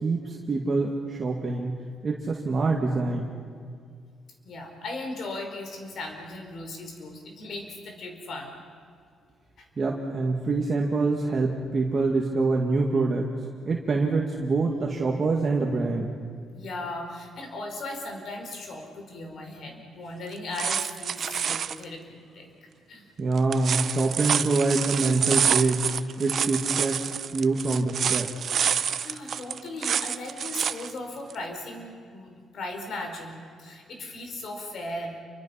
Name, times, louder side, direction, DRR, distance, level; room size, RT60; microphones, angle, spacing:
voice 1, 0.0-3.4 9.8-13.3 13.6-16.1 23.2-25.8 26.2-28.3, right 3 dB, 35° right, -1 dB, 2.1 m, -25 dB
voice 2, 4.4-8.6 9.6-9.7 16.5-22.5 22.9-23.1 28.7-35.2, left 2 dB, 60° left, 3 dB, 4.8 m, -37 dB
sound 1, 20.3-21.8 23.4-30.9 31.3-31.4, right 7 dB, 55° right, 0.7 m, -27 dB
28.5 x 24.0 x 5.8 m, 2.2 s
cardioid pair, 110°, 0 cm